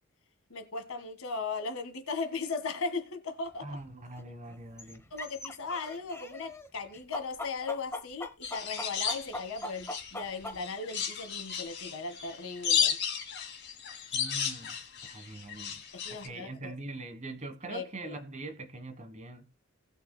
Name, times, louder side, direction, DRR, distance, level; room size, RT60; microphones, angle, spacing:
voice 1, 0.5-3.8 5.1-13.0 15.9-16.7 17.7-18.2, left 4 dB, 85° left, 1.8 m, -37 dB
sound 1, 3.5-3.6 4.2-4.3 4.5-6.7 6.9-10.6, left 1 dB, 10° left, 0.9 m, -40 dB
voice 2, 3.6-5.0 14.1-15.8 16.1-19.5, right 2 dB, 35° right, 1.4 m, -43 dB
sound 2, 8.4-10.2 10.6-16.3, left 7 dB, 55° left, 2.2 m, -33 dB
18.5 x 6.4 x 2.2 m
head